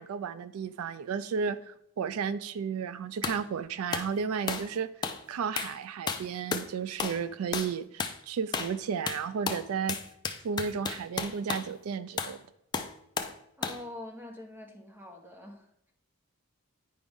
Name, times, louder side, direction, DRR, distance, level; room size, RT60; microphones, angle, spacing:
voice 1, 0.0-4.9 5.3-10.0 10.4-12.4, right 6 dB, 80° right, 14 dB, 0.4 m, -33 dB
sound 1, 3.2-3.4 3.9-4.1 4.5-4.7 5.0-5.2 5.6-5.8 6.1-6.7 7.0-7.2 7.5-7.7 8.0-8.2 8.5-8.8 9.1-11.7 12.2-12.4 12.7-13.4 13.6-13.8, left 5 dB, 20° left, 0.4 m, -33 dB
voice 2, 13.6-15.9, left 1 dB, 10° right, 2 dB, 1.0 m, -45 dB
9.5 x 5.0 x 3.5 m, 0.78 s
head